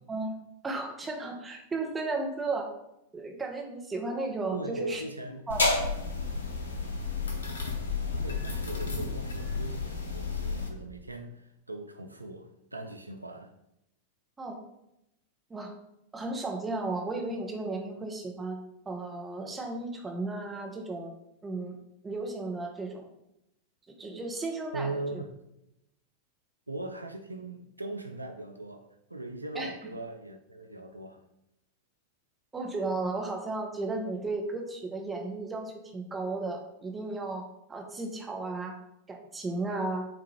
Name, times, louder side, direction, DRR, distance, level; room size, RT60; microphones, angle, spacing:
voice 1, 0.6-2.7 3.1-5.0 5.5-5.7 14.4-14.6 15.5-15.7 16.1-18.6 18.9-21.1 21.4-21.8 22.0-23.0 24.0-25.2 29.5-29.7 32.5-38.7 39.1-40.1, right 3 dB, 15° right, 0.8 m, -34 dB
voice 2, 4.5-5.5 8.2-13.5 24.7-25.3 26.7-28.8 29.1-31.2, right 2 dB, 85° right, 0.3 m, -39 dB
sound 1, 5.5-10.7, left 3 dB, 70° left, 0.6 m, -31 dB
5.7 x 2.4 x 3.1 m
figure-of-eight pair, 90°, 0 cm